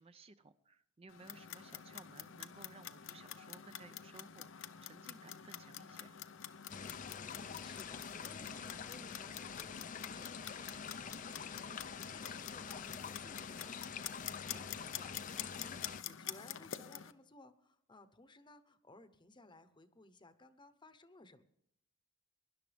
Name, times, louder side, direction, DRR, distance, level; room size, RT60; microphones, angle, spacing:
voice 1, 0.0-6.2 14.5-14.7, right 3 dB, 30° right, 10 dB, 0.5 m, -58 dB
Clock, 1.1-17.1, left 10 dB, 90° left, 0.8 m, -48 dB
sound 1, 6.7-16.0, left 6 dB, 40° left, 0.5 m, -46 dB
voice 2, 6.9-21.4, left 2 dB, 25° left, 11 dB, 1.0 m, -60 dB
23.0 x 11.5 x 3.5 m, 0.75 s
head